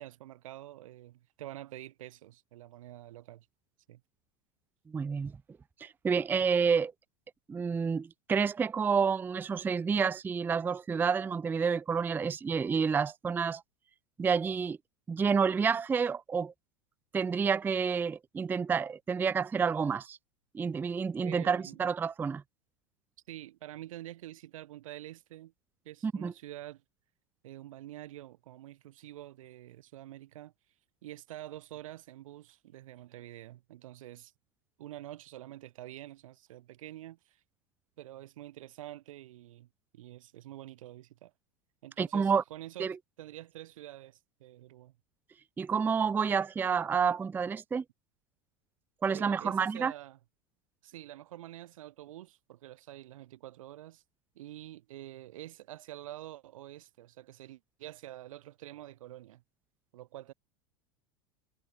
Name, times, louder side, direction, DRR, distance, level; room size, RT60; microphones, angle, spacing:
voice 1, 0.0-3.5 3.9-4.0 21.2-21.8 23.3-25.5 25.8-26.8 27.4-30.5 31.0-34.3 34.8-37.4 38.0-39.7 39.9-41.3 41.8-44.9 49.1-50.2 50.8-54.0 54.4-59.4 59.9-60.3, right 14 dB, 80° right, 2.2 m, -47 dB
voice 2, 4.9-5.3 5.8-6.9 7.5-13.6 14.2-14.8 15.1-16.5 17.1-20.2 20.5-22.4 26.0-26.3 42.0-42.4 42.8-42.9 45.6-47.8 49.0-49.9, right 6 dB, 10° right, 0.4 m, -29 dB
supercardioid pair, 125°, 17 cm